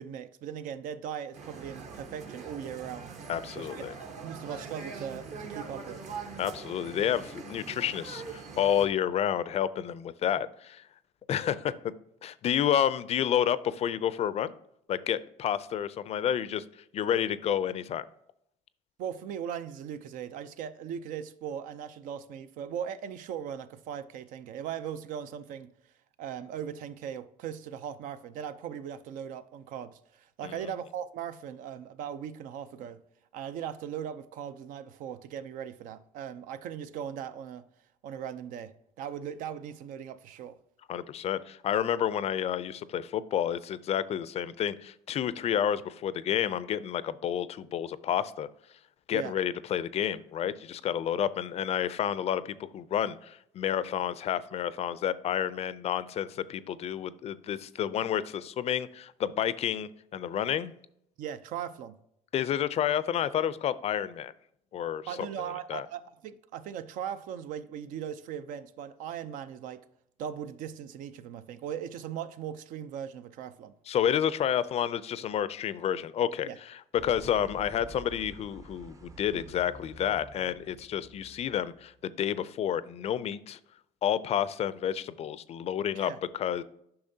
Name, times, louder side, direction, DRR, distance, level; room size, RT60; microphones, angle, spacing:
voice 1, 0.0-3.1 3.5-3.8 4.2-6.1 19.0-25.7 26.2-33.0 33.3-37.7 38.0-40.6 49.1-49.3 61.2-62.0 65.1-69.8 70.2-73.7 76.4-76.6 86.0-86.2, right 9 dB, 70° right, 0.5 m, -39 dB
sound 1, 1.3-8.9, right 5 dB, 55° right, 1.2 m, -43 dB
voice 2, 3.3-3.9 6.4-10.8 11.3-11.9 12.2-14.5 14.9-16.6 16.9-18.0 30.4-30.7 40.9-48.5 49.1-60.7 62.3-64.3 64.7-65.1 65.7-65.9 73.9-83.6 84.0-86.6, left 9 dB, 50° left, 0.4 m, -30 dB
sound 2, 77.0-82.0, right 2 dB, 25° right, 0.6 m, -49 dB
8.6 x 5.8 x 2.7 m
cardioid pair, 95°, 14 cm